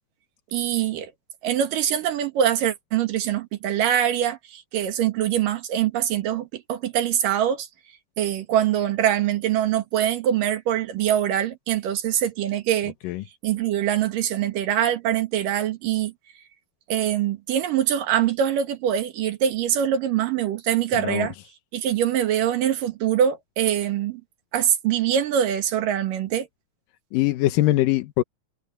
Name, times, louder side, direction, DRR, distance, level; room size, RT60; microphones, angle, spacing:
voice 1, 0.5-1.1 1.4-7.7 8.2-12.9 13.4-16.1 16.9-21.3 21.7-24.2 24.5-26.5, right 10 dB, 85° right, 3.3 m, -23 dB
voice 2, 27.1-28.2, left 16 dB, 90° left, 2.6 m, -22 dB
omnidirectional pair, 3.8 m